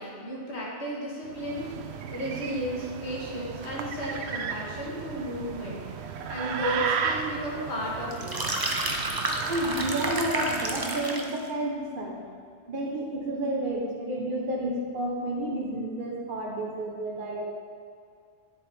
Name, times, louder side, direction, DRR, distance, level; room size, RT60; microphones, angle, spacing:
voice 1, 0.0-1.7 2.1-5.9 6.3-8.5, equal, 90° left, -5 dB, 1.9 m, -33 dB
sound 1, 1.3-11.0, right 6 dB, 80° right, 0.9 m, -35 dB
sound 2, 8.1-11.4, right 2 dB, 25° right, 0.7 m, -30 dB
voice 2, 9.5-12.2 12.7-17.4, right 1 dB, 55° right, -2 dB, 1.3 m, -30 dB
10.5 x 7.5 x 3.5 m, 2.2 s
omnidirectional pair, 1.1 m